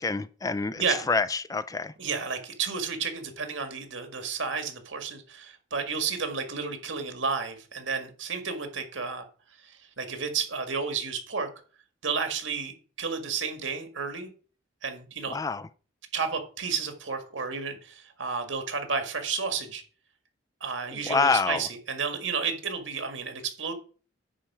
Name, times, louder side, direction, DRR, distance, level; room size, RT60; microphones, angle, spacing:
voice 1, 0.0-1.9 15.3-15.7 20.9-21.7, left 4 dB, 20° left, 0.4 m, -27 dB
voice 2, 0.8-1.1 2.0-9.2 9.6-11.5 12.0-14.3 14.8-15.4 16.1-19.8 20.6-23.7, right 5 dB, 90° right, 1.9 m, -32 dB
10.0 x 4.5 x 6.0 m
head